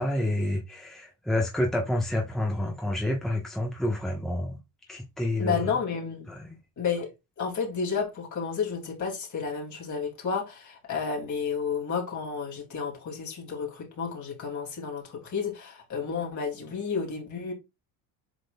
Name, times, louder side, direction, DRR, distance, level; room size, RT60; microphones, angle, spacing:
voice 1, 0.0-4.6 4.9-5.7 6.3-6.6, left 1 dB, ahead, 1.3 m, -29 dB
voice 2, 5.4-6.3 6.8-7.1 7.4-17.5, left 6 dB, 45° left, 3.1 m, -31 dB
8.0 x 5.1 x 2.4 m
cardioid pair, 110°, 41 cm